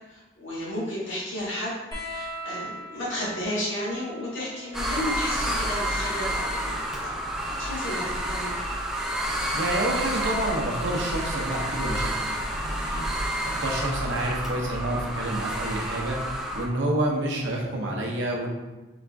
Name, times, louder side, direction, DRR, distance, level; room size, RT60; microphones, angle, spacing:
voice 1, 0.1-8.7, left 1 dB, 85° left, -6 dB, 1.5 m, -33 dB
sound 1, 1.9-9.0 10.3-11.2 12.5-12.6, equal, 20° left, 1.0 m, -43 dB
sound 2, 4.7-16.7, right 1 dB, 5° right, 0.4 m, -29 dB
voice 2, 9.5-13.1 13.4-16.2 16.5-18.5, right 1 dB, 80° right, -1 dB, 0.8 m, -28 dB
4.9 x 2.5 x 3.4 m, 1.1 s
head